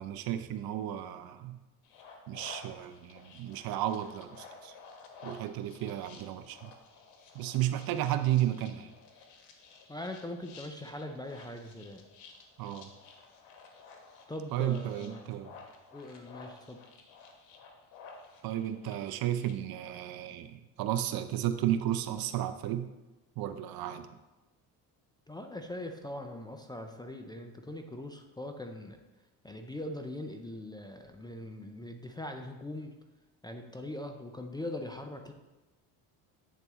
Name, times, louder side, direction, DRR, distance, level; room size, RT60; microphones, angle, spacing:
voice 1, 0.0-1.6 2.3-4.7 5.2-6.7 7.3-8.9 12.6-12.9 14.5-15.5 18.4-22.9 23.4-24.2, right 12 dB, 60° right, 10 dB, 0.6 m, -33 dB
sound 1, 1.8-19.5, left 4 dB, 75° left, 1.1 m, -53 dB
voice 2, 9.9-12.1 14.3-15.3 15.9-16.8 25.3-29.0 29.4-32.9 33.4-35.3, left 1 dB, 10° left, 5 dB, 0.4 m, -41 dB
8.3 x 4.0 x 3.6 m, 1.1 s
supercardioid pair, 90°, 42 cm